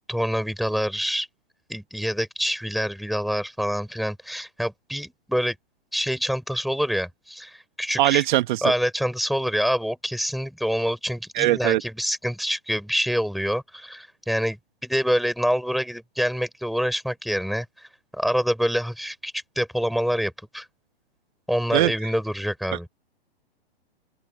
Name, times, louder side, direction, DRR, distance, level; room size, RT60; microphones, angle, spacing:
voice 1, 0.1-1.3 1.7-5.6 5.9-8.2 8.6-20.7 21.5-22.9, equal, ahead, 5.7 m, -26 dB
voice 2, 8.0-8.6 11.3-11.8 21.7-21.9, right 16 dB, 50° right, 1.3 m, -20 dB
open air
hypercardioid pair, 125°, 31 cm